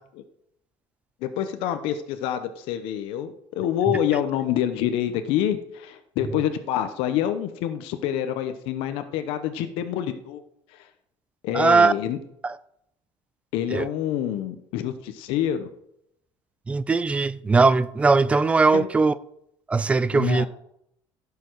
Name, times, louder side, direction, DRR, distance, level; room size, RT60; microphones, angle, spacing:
voice 1, 1.2-10.4 10.7-10.8 11.4-12.2 13.5-15.7 18.7-18.9 20.1-20.5, left 10 dB, 75° left, 0.9 m, -27 dB
voice 2, 11.5-11.9 12.4-12.6 13.7-13.9 16.7-19.1 19.7-20.5, right 4 dB, 15° right, 0.4 m, -19 dB
16.0 x 6.9 x 4.7 m
cardioid pair, 160°, 10 cm